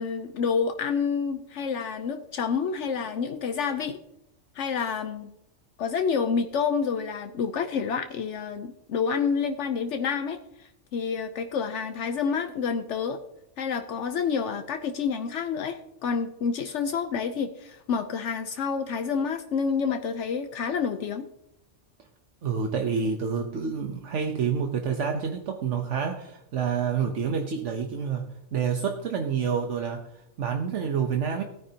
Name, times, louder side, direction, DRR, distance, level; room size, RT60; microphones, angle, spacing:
voice 1, 0.0-4.0 4.5-5.3 5.8-13.2 13.6-21.3, left 6 dB, 75° left, 8 dB, 1.0 m, -28 dB
voice 2, 22.4-31.4, right 6 dB, 70° right, 4 dB, 1.2 m, -28 dB
17.0 x 9.4 x 2.8 m, 0.83 s
omnidirectional pair, 1.3 m